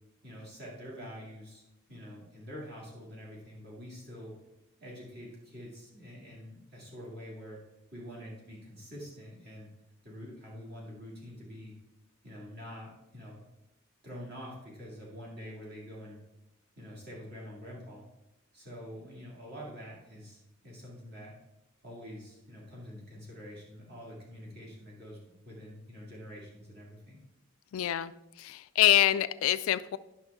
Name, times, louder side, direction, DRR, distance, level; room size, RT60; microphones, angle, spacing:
voice 1, 0.2-4.3 4.8-7.6 7.9-9.7 10.0-11.7 12.2-13.4 14.0-16.2 16.8-18.0 18.5-21.3 21.8-25.2 25.4-27.2, equal, 50° right, -4 dB, 2.4 m, -46 dB
voice 2, 27.7-28.1 28.4-30.0, left 12 dB, 70° left, 14 dB, 0.3 m, -25 dB
9.2 x 6.0 x 3.6 m, 0.92 s
head